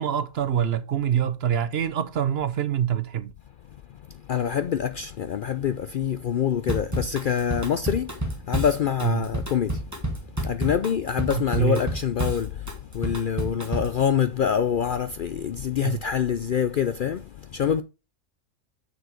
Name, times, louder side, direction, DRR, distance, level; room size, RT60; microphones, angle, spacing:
voice 1, 0.0-3.3 9.0-9.3 11.3-11.8 15.8-16.0, right 9 dB, 60° right, 0.9 m, -25 dB
voice 2, 4.3-9.8 10.4-17.8, left 8 dB, 60° left, 0.5 m, -26 dB
Drum kit / Drum, 6.7-14.0, right 1 dB, 15° right, 1.8 m, -30 dB
7.0 x 6.5 x 4.5 m
omnidirectional pair, 1.3 m